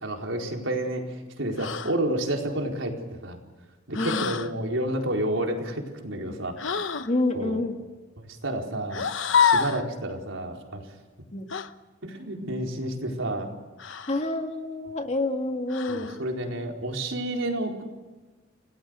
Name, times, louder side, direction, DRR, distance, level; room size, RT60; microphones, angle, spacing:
voice 1, 0.0-3.4 3.9-6.9 7.3-7.5 8.2-9.0 9.4-10.8 12.0-13.5 15.9-17.8, right 1 dB, 80° right, 1 dB, 4.5 m, -30 dB
sound 1, 1.6-2.0 3.9-4.5 6.6-7.1 8.9-9.9 11.5-11.7 13.8-14.3 15.7-16.2, left 6 dB, 70° left, 1.1 m, -26 dB
voice 2, 3.9-4.3 7.0-7.8 11.3-11.5 14.1-16.2, left 2 dB, 35° left, 5 dB, 2.2 m, -28 dB
30.0 x 18.0 x 6.5 m, 1.3 s
head